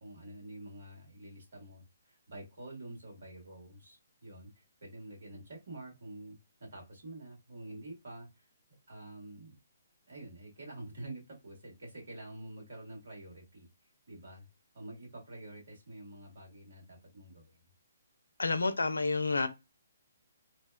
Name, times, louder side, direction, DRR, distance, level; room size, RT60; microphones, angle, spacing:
voice 1, 0.0-4.5 4.8-8.5 8.9-9.6 10.1-13.7 14.1-14.4 14.7-17.6, right 1 dB, 65° right, 1.5 m, -48 dB
voice 2, 18.4-19.5, left 3 dB, 85° left, 0.4 m, -29 dB
2.7 x 2.1 x 2.3 m
hypercardioid pair, 140°, 0 cm